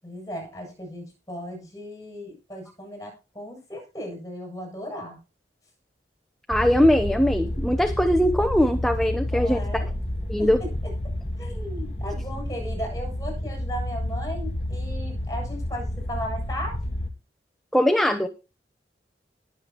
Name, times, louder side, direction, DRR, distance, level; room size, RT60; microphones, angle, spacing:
voice 1, 0.0-5.2 9.3-9.9 10.4-10.9 11.4-16.8, equal, 20° left, 2 dB, 7.8 m, -36 dB
sound 1, 6.5-17.1, left 1 dB, 35° left, 2.2 m, -30 dB
voice 2, 6.5-9.6 10.3-10.6 17.7-18.3, equal, ahead, 6 dB, 0.8 m, -21 dB
20.5 x 7.8 x 3.0 m, 0.31 s
head